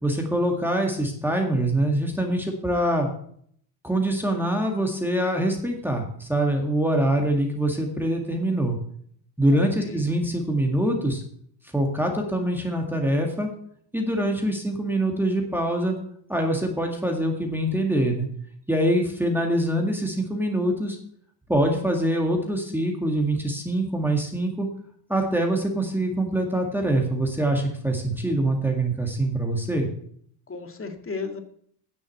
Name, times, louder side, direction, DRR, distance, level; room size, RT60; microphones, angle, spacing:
voice 1, 0.0-3.1 3.8-8.8 9.4-11.2 11.7-13.5 13.9-16.0 16.3-18.3 18.7-21.0 21.5-24.7 25.1-29.9, right 1 dB, 5° right, 1 dB, 1.9 m, -24 dB
voice 2, 9.5-10.1 30.5-31.4, left 4 dB, 30° left, 6 dB, 1.9 m, -35 dB
9.9 x 6.2 x 7.7 m, 0.64 s
cardioid pair, 100°, 46 cm